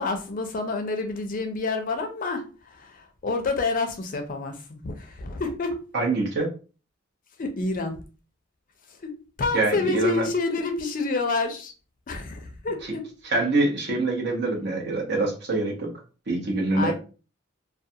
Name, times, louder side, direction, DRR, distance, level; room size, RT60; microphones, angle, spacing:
voice 1, 0.0-5.8 7.4-8.0 9.0-9.1 9.4-11.7 12.1-13.0 16.7-16.9, left 3 dB, 40° left, 5 dB, 0.4 m, -28 dB
voice 2, 5.9-6.5 9.5-10.2 12.8-12.9 13.2-15.9 16.3-16.9, right 2 dB, 55° right, 0 dB, 0.8 m, -25 dB
2.3 x 2.2 x 2.7 m, 0.34 s
head